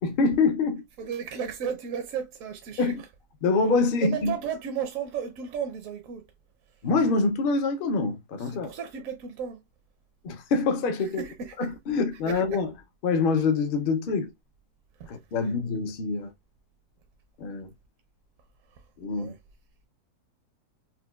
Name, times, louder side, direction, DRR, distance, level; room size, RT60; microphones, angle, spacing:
voice 1, 0.0-0.8 2.8-3.0 3.4-4.3 6.8-8.7 10.2-11.2 11.6-12.7 13.0-14.3 15.1-16.3 17.4-17.7 19.0-19.3, left 4 dB, 60° left, 0.5 m, -25 dB
voice 2, 1.0-2.9 4.0-6.2 8.4-9.6 11.2-11.7 12.3-12.6 15.0-15.1 19.1-19.3, right 7 dB, 70° right, 0.9 m, -34 dB
4.4 x 2.2 x 2.2 m
omnidirectional pair, 1.6 m